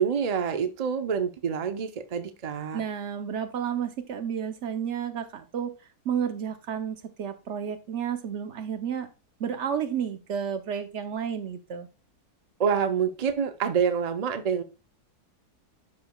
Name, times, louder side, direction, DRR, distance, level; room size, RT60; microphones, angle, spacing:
voice 1, 0.0-2.8 12.6-14.6, right 7 dB, 80° right, 8 dB, 0.3 m, -27 dB
voice 2, 2.7-5.7 6.0-9.1 9.4-11.9, right 8 dB, 55° right, 9 dB, 0.9 m, -31 dB
11.5 x 4.9 x 2.3 m, 0.29 s
omnidirectional pair, 1.7 m